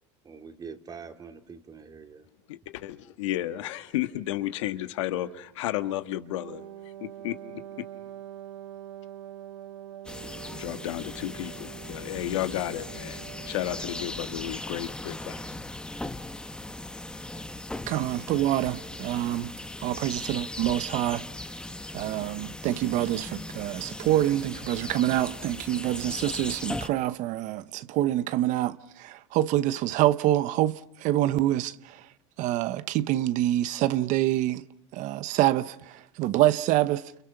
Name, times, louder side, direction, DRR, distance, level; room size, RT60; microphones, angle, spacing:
voice 1, 0.2-2.3, right 5 dB, 25° right, 2.6 m, -44 dB
voice 2, 2.5-6.6 7.0-7.9 10.5-15.6, left 14 dB, 80° left, 1.6 m, -33 dB
Wind instrument woodwind instrument, 6.3-14.4, right 11 dB, 90° right, 1.0 m, -44 dB
sound 1, 10.0-26.9, left 1 dB, 5° left, 1.3 m, -38 dB
voice 3, 17.9-19.5 19.8-21.2 21.9-32.0 32.4-34.6 34.9-37.0, right 14 dB, 55° right, 1.0 m, -26 dB
29.5 x 28.0 x 5.9 m
supercardioid pair, 105°, 15 cm